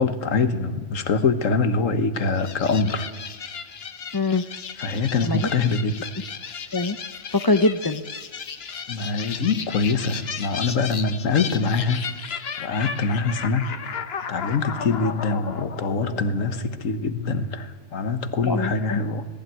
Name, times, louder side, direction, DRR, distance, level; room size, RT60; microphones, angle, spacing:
voice 1, 0.0-3.1 4.8-6.1 8.9-12.1 12.6-13.7 14.3-19.3, left 4 dB, 85° left, 11 dB, 1.6 m, -24 dB
sound 1, 2.4-17.0, left 6 dB, 55° left, 1.2 m, -35 dB
voice 2, 4.1-4.4 5.2-5.5 6.7-7.0 7.3-8.0 18.5-19.0, left 3 dB, 35° left, 11 dB, 0.3 m, -23 dB
19.0 x 15.0 x 9.2 m, 1.4 s
omnidirectional pair, 1.3 m